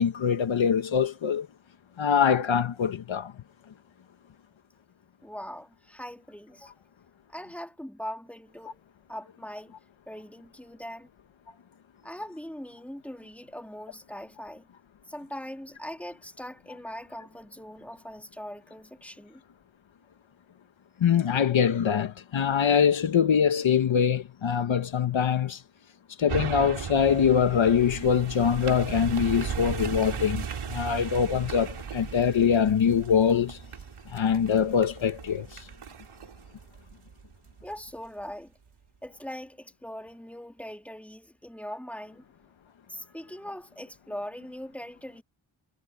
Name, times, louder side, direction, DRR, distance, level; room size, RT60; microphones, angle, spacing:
voice 1, 0.0-1.5 2.0-3.3 21.0-25.6 26.2-33.6 34.1-35.7, left 7 dB, 70° left, 1.2 m, -24 dB
voice 2, 5.2-6.7 7.3-8.8 9.1-9.7 10.1-11.1 12.0-14.7 15.1-19.4 37.6-38.5 39.0-42.2 42.9-45.2, equal, 5° left, 3.4 m, -41 dB
sound 1, 26.3-37.7 38.2-38.3, right 7 dB, 90° right, 3.3 m, -36 dB
wide cardioid pair, 155°, 48 cm